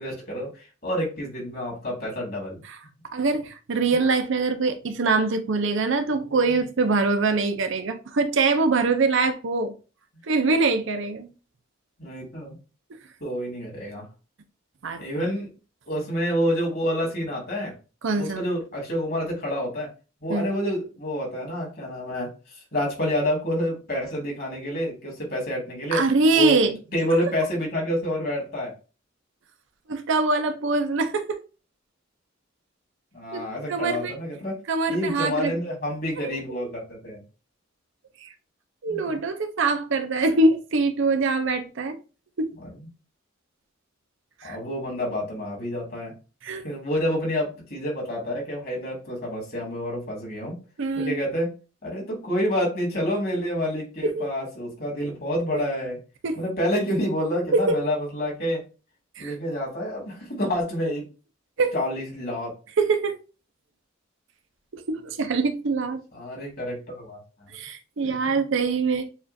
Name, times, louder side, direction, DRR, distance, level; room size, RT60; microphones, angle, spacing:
voice 1, 0.0-2.6 12.0-12.6 13.2-14.0 15.0-15.5 15.9-17.7 18.2-19.9 20.2-26.0 26.3-26.6 26.9-28.7 33.1-34.6 34.9-37.2 38.9-39.2 42.6-42.9 44.4-46.1 46.6-50.6 50.9-51.5 51.8-56.0 56.4-58.6 59.2-61.0 61.7-62.5 66.1-67.2 68.0-68.4, equal, 50° left, 2.4 m, -28 dB
voice 2, 3.1-9.7 10.3-11.3 14.8-15.0 18.0-18.5 20.3-20.5 25.9-26.8 27.1-27.2 29.9-31.4 33.3-33.4 33.7-34.1 34.7-35.6 38.2-38.3 38.8-42.0 42.4-42.5 44.4-44.6 46.4-46.7 50.8-51.2 54.0-54.3 55.5-55.6 56.2-56.4 57.5-57.8 59.2-59.4 61.6-61.7 62.8-63.2 64.7-66.0 67.5-69.1, right 3 dB, 65° right, 0.6 m, -23 dB
7.0 x 2.4 x 2.6 m
head